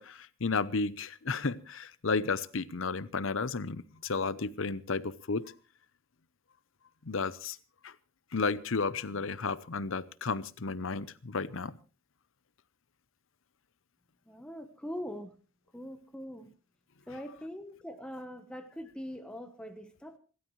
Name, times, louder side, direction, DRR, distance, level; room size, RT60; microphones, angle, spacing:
voice 1, 0.0-5.5 7.1-7.6 7.8-7.9 8.3-11.7, left 4 dB, 70° left, 0.8 m, -33 dB
voice 2, 14.3-15.3 15.7-16.5 17.1-20.2, equal, 5° left, 1.1 m, -42 dB
27.0 x 13.0 x 3.2 m
head